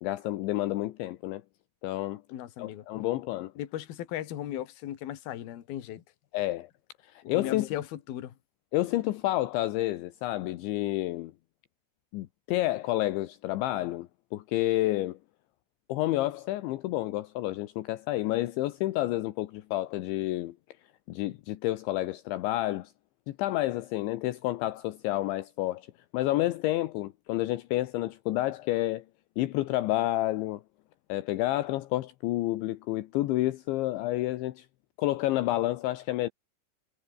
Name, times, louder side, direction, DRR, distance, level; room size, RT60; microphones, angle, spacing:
voice 1, 0.0-1.4 1.8-2.2 2.6-3.5 6.3-6.7 7.0-7.7 8.7-11.3 12.1-15.2 15.9-20.6 21.1-22.9 23.3-25.9 26.1-29.0 29.4-30.6 31.1-34.7 35.0-36.3, left 16 dB, 75° left, 3.3 m, -29 dB
voice 2, 2.3-2.8 3.6-6.0 7.2-8.3, left 12 dB, 60° left, 3.4 m, -37 dB
omnidirectional pair, 5.6 m